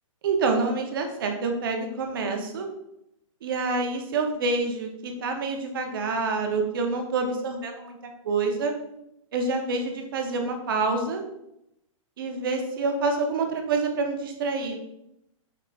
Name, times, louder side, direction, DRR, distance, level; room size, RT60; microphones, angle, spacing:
voice 1, 0.2-2.7 3.4-8.0 8.2-8.7 9.3-11.2 12.2-14.8, right 3 dB, 40° right, 4 dB, 0.6 m, -27 dB
4.7 x 3.5 x 2.3 m, 0.82 s
hypercardioid pair, 170°, 17 cm